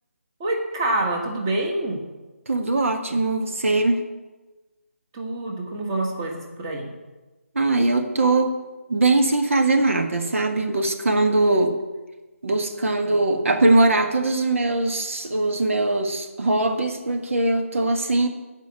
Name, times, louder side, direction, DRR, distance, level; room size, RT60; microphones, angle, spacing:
voice 1, 0.4-2.0 5.1-6.9, right 2 dB, 15° right, 1 dB, 1.4 m, -26 dB
voice 2, 2.5-4.0 7.6-8.5 8.9-11.8 12.4-18.3, right 2 dB, 65° right, 5 dB, 1.7 m, -21 dB
14.5 x 5.3 x 8.4 m, 1.2 s
hypercardioid pair, 175°, 8 cm